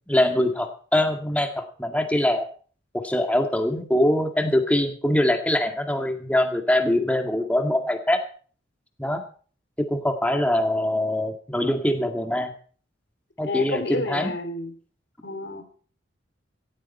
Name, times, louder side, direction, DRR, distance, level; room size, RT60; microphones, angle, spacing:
voice 1, 0.1-2.5 2.9-8.2 9.0-9.2 9.8-12.5 13.4-14.3, left 1 dB, 10° left, 4 dB, 2.0 m, -23 dB
voice 2, 13.4-14.7 15.2-15.6, left 2 dB, 65° left, 8 dB, 2.9 m, -30 dB
17.0 x 13.5 x 4.3 m, 0.43 s
head